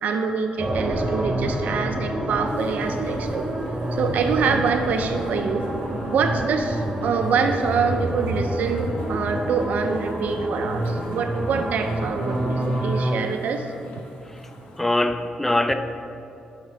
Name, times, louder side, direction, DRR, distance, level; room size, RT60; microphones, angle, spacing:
voice 1, 0.0-3.5 3.9-5.7 6.1-13.7, right 5 dB, 70° right, 5 dB, 0.4 m, -25 dB
sound 1, 0.6-13.2, right 1 dB, 30° right, 1.0 m, -27 dB
sound 2, 2.4-14.8, left 1 dB, 80° left, 0.9 m, -43 dB
voice 2, 14.8-15.7, left 1 dB, 10° left, 8 dB, 0.3 m, -22 dB
5.4 x 4.8 x 4.8 m, 2.7 s
cardioid pair, 80°, 3 cm